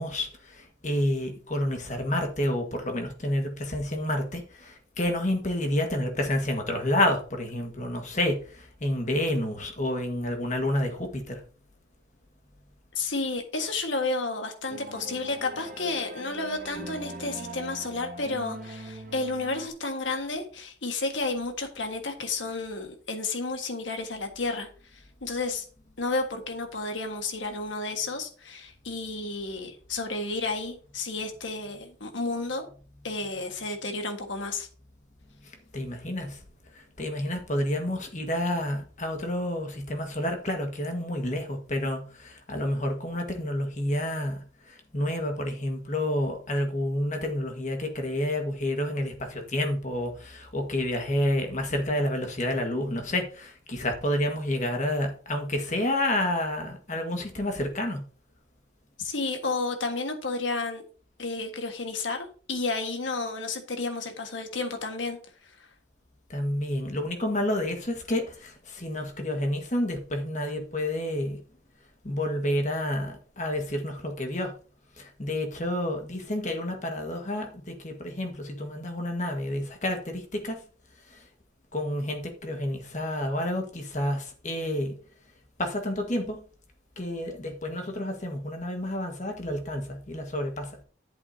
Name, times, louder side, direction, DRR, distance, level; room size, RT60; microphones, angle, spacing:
voice 1, 0.0-11.4 35.7-36.4 36.7-44.4 44.7-58.0 66.3-71.4 72.0-74.5 75.0-80.6 81.1-81.2 81.7-85.0 85.6-86.4 87.0-90.8, left 1 dB, 40° left, 1.6 m, -29 dB
voice 2, 12.9-24.7 25.2-25.6 26.0-32.7 33.0-34.7 59.0-60.8 61.2-65.2, left 3 dB, 80° left, 1.6 m, -31 dB
sound 1, 14.7-19.7, right 2 dB, 45° right, 1.3 m, -41 dB
10.5 x 8.2 x 2.8 m
head